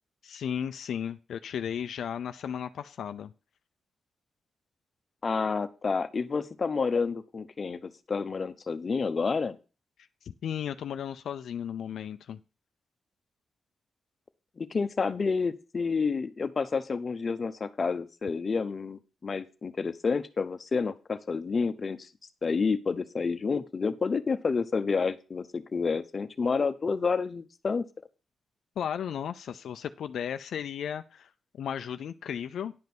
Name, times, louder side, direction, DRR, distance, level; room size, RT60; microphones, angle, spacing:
voice 1, 0.2-3.3 10.2-12.4 28.8-32.7, left 8 dB, 85° left, 10 dB, 0.5 m, -35 dB
voice 2, 5.2-9.6 14.6-22.1 22.4-27.8, left 5 dB, 40° left, 10 dB, 0.9 m, -29 dB
10.5 x 5.3 x 6.1 m, 0.33 s
cardioid pair, 105°, 0 cm